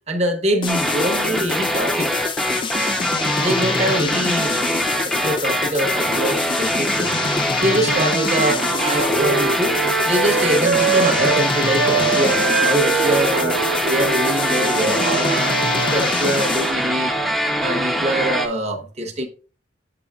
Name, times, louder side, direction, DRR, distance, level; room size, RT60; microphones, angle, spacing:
voice 1, 0.1-2.1 2.8-7.3 7.6-9.8 10.0-19.3, right 1 dB, 35° right, 1.0 m, -24 dB
sound 1, 0.6-16.8, left 5 dB, 25° left, 0.3 m, -27 dB
sound 2, 0.7-18.5, equal, ahead, 0.7 m, -23 dB
Wind instrument woodwind instrument, 7.5-11.5 11.8-16.0, right 6 dB, 75° right, 0.4 m, -24 dB
6.9 x 6.9 x 2.3 m
head